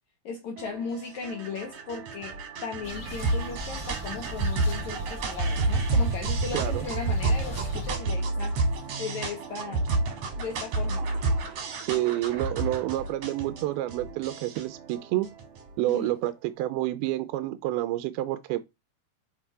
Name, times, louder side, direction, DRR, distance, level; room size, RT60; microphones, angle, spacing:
voice 1, 0.2-8.7 9.0-9.8 10.4-11.1 15.8-16.1, left 5 dB, 70° left, 1.8 m, -37 dB
sound 1, 0.6-16.1, right 2 dB, 60° right, 1.8 m, -30 dB
sound 2, 2.8-8.0, equal, 20° left, 1.4 m, -38 dB
voice 2, 6.5-6.8 11.8-15.3 15.8-18.6, right 15 dB, 85° right, 2.4 m, -29 dB
7.2 x 3.7 x 4.6 m
omnidirectional pair, 4.5 m